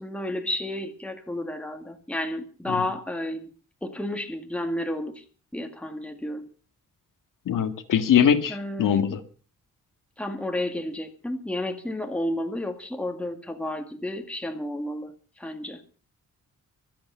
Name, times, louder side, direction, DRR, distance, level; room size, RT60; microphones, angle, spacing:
voice 1, 0.0-3.5 3.8-5.2 5.5-6.5 8.5-9.0 10.2-15.8, left 1 dB, 5° left, 2.0 m, -31 dB
voice 2, 7.5-9.2, left 8 dB, 80° left, 2.0 m, -22 dB
25.0 x 8.7 x 5.6 m
wide cardioid pair, 160°, 32 cm